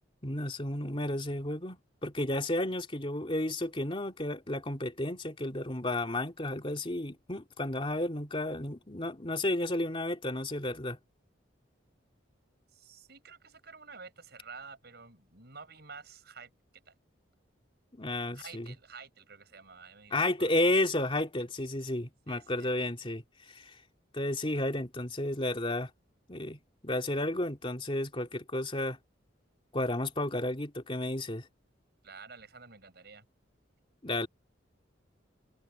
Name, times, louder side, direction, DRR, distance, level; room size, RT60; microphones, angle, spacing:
voice 1, 0.2-11.0 18.0-18.7 20.1-23.2 23.5-23.7 24.1-25.9 26.3-29.0 29.7-31.5 34.0-34.3, left 1 dB, 30° left, 2.8 m, -32 dB
voice 2, 12.7-16.5 16.9-17.0 18.3-20.5 22.3-22.7 32.0-33.3, right 5 dB, 60° right, 7.3 m, -50 dB
head